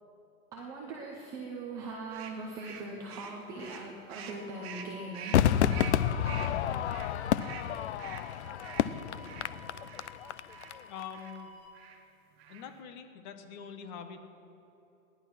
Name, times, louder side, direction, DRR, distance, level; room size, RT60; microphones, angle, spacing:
voice 1, 0.5-5.4, right 2 dB, 10° right, -1 dB, 0.4 m, -41 dB
sound 1, 2.1-10.1 10.5-10.8 11.1-11.4 11.7-12.0 12.3-12.8, right 7 dB, 45° right, 1.8 m, -47 dB
sound 2, 4.1-11.7, equal, 75° left, 4.2 m, -52 dB
Crowd / Fireworks, 5.3-10.7 11.0-11.1, left 10 dB, 55° left, 0.6 m, -29 dB
voice 2, 10.9-11.5 12.5-14.2, left 7 dB, 35° left, 6 dB, 1.4 m, -44 dB
17.0 x 11.0 x 6.0 m, 2.8 s
hypercardioid pair, 155°, 41 cm